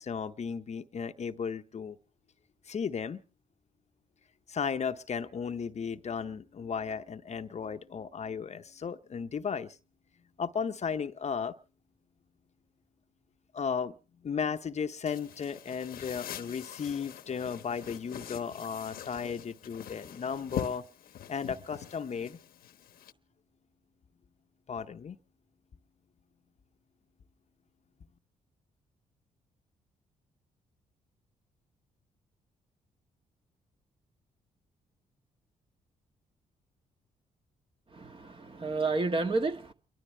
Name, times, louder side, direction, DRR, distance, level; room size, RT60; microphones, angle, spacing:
voice 1, 0.0-2.0 2.7-3.2 4.5-9.8 10.4-11.5 13.5-14.0 14.2-20.8 21.3-22.4 24.7-25.2, left 6 dB, 45° left, 0.8 m, -35 dB
sound 1, 15.1-23.1, left 10 dB, 75° left, 1.0 m, -44 dB
voice 2, 37.9-39.7, right 3 dB, 35° right, 1.6 m, -30 dB
29.5 x 12.0 x 3.3 m
supercardioid pair, 55°, 15 cm